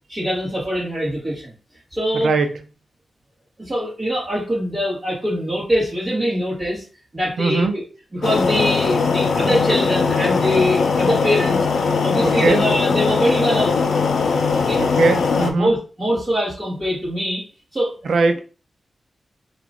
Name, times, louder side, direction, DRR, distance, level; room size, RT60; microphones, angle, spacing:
voice 1, 0.1-1.5 1.9-2.3 3.6-6.8 7.1-7.8 8.1-11.6 12.0-13.8 14.5-14.8 15.5-17.4 17.7-17.9, equal, 30° right, -9 dB, 1.5 m, -23 dB
voice 2, 2.1-2.5 7.4-7.7 12.2-12.6 14.8-15.7 18.0-18.4, right 4 dB, 75° right, 7 dB, 0.5 m, -19 dB
sound 1, 8.2-15.5, left 5 dB, 75° left, 0.4 m, -20 dB
2.9 x 2.4 x 3.5 m, 0.36 s
wide cardioid pair, 135°, 0 cm